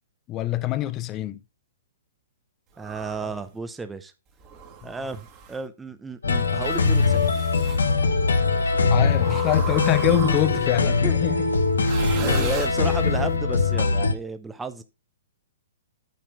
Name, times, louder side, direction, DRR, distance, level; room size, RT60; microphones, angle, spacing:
voice 1, 0.3-1.4 3.2-3.3 8.6-11.5 11.8-12.5 12.8-12.9, left 13 dB, 30° left, 0.8 m, -26 dB
voice 2, 2.8-4.1 4.8-7.3 10.5-10.6 11.0-11.2 11.8-14.8, right 4 dB, 10° right, 0.8 m, -33 dB
sound 1, 2.8-3.4 4.4-5.6 6.6-7.9 9.2-10.7 11.8-13.2, right 6 dB, 30° right, 2.1 m, -36 dB
sound 2, 6.2-14.1, left 4 dB, 90° left, 1.3 m, -22 dB
9.3 x 4.2 x 4.9 m
hypercardioid pair, 130°, 0 cm